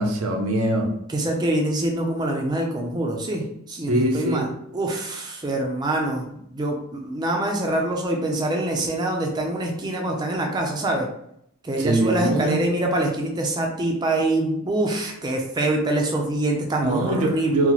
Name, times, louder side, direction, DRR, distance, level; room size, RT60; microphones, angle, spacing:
voice 1, 0.0-0.9 3.9-4.5 11.8-12.6 16.8-17.7, right 1 dB, 75° right, 3 dB, 0.6 m, -23 dB
voice 2, 1.1-4.5 4.7-11.1 11.6-17.6, right 1 dB, 20° right, 0 dB, 0.4 m, -25 dB
3.8 x 2.0 x 2.9 m, 0.73 s
head